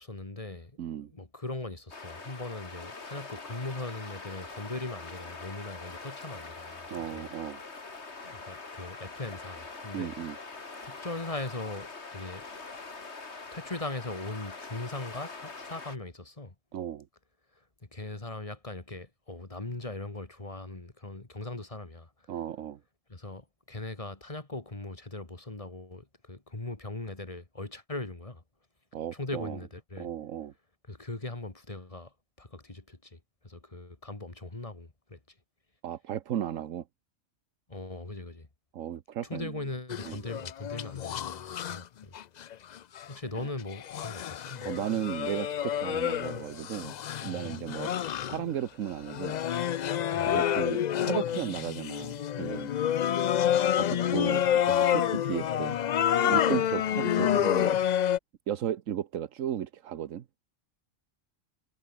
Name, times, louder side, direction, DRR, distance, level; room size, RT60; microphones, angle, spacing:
voice 1, 0.0-0.7 1.0-7.3 8.2-10.1 10.8-12.4 13.5-16.5 17.9-22.1 23.1-28.4 29.1-30.1 30.9-35.2 37.7-38.5 39.2-42.1 43.1-44.8 47.3-47.6 50.1-50.4 54.7-54.8, left 2 dB, 25° left, 2.2 m, -40 dB
voice 2, 0.8-1.1 6.9-7.6 9.9-10.4 16.7-17.1 22.3-22.8 28.9-29.6 30.0-30.5 35.8-36.8 38.7-39.6 40.0-40.2 44.6-46.9 47.2-47.9 48.2-49.4 50.3-52.7 53.7-55.8 56.2-57.8 58.5-60.2, right 10 dB, 80° right, 1.3 m, -35 dB
sound 1, 1.9-16.0, left 3 dB, 55° left, 2.8 m, -43 dB
sound 2, 39.9-41.8 42.1-43.1 43.7-48.6 49.1-58.2, left 10 dB, 80° left, 0.4 m, -28 dB
omnidirectional pair, 1.3 m